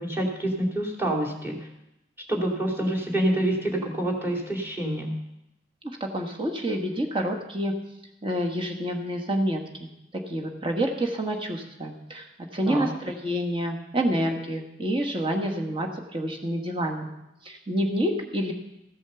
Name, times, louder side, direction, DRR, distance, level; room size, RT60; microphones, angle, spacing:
voice 1, 0.0-1.7 2.3-5.1 12.7-12.9, right 1 dB, 10° right, 1 dB, 2.8 m, -27 dB
voice 2, 6.0-7.7 8.2-9.9 10.3-12.2 12.5-17.1 17.4-18.5, equal, 30° right, 3 dB, 1.5 m, -28 dB
15.0 x 8.4 x 7.0 m, 0.86 s
head